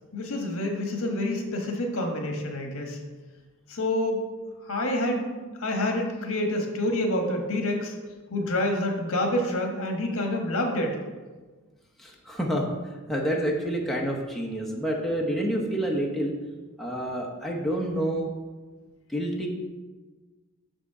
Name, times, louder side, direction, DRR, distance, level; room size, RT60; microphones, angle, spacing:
voice 1, 0.1-3.0 3.7-4.2 4.6-5.2 5.6-7.9 8.3-11.0, left 1 dB, 65° left, 3 dB, 1.4 m, -27 dB
voice 2, 12.0-12.7 13.1-16.3 16.8-18.3 19.1-19.5, right 1 dB, ahead, -2 dB, 0.8 m, -28 dB
6.5 x 6.2 x 4.7 m, 1.3 s
head